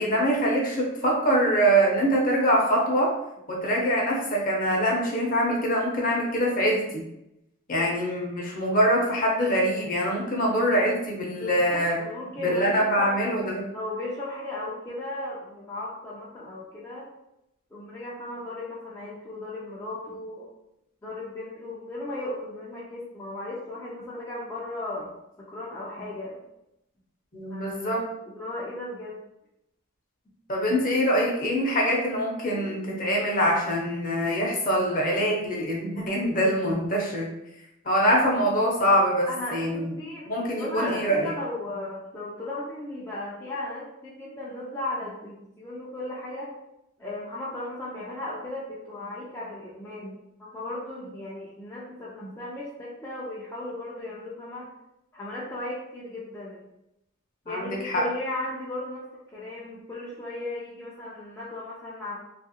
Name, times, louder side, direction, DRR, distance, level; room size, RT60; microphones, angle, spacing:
voice 1, 0.0-3.1 3.5-7.0 7.7-12.0 12.4-13.6 27.3-28.0 30.5-37.3 37.8-39.9 40.3-41.3 57.5-58.0, equal, 40° left, -2 dB, 0.7 m, -24 dB
voice 2, 11.4-13.3 13.7-17.1 17.7-20.5 21.0-25.1 25.4-26.4 27.5-28.0 28.3-29.2 32.5-32.8 39.3-46.5 47.0-50.1 50.4-54.7 55.1-56.6 57.5-62.2, left 2 dB, 15° left, -7 dB, 0.4 m, -36 dB
3.0 x 2.4 x 2.7 m, 0.86 s
head